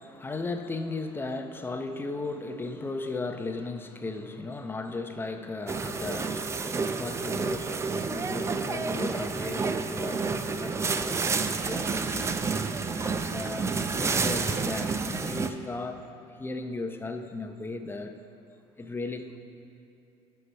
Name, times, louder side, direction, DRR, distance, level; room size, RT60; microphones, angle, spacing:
voice 1, 0.0-12.4 12.9-16.1 16.4-18.2 18.8-19.4, left 3 dB, 20° left, 0.7 m, -36 dB
sound 1, 5.7-15.5, right 4 dB, 25° right, 0.4 m, -29 dB
11.0 x 5.7 x 5.3 m
cardioid pair, 100°, 12 cm